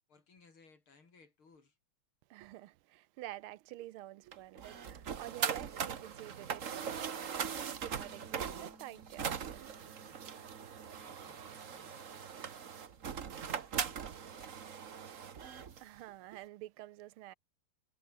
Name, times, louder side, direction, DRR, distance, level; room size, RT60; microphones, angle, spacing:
voice 1, 0.1-1.8 10.0-12.8 13.4-14.8, left 4 dB, 70° left, 5.2 m, -64 dB
voice 2, 2.3-7.2 7.5-9.9 15.8-17.3, right 15 dB, 80° right, 1.5 m, -49 dB
sound 1, 4.3-15.8, right 7 dB, 40° right, 1.4 m, -40 dB
sound 2, 7.8-12.4 12.7-14.1, equal, ahead, 3.0 m, -63 dB
omnidirectional pair, 2.4 m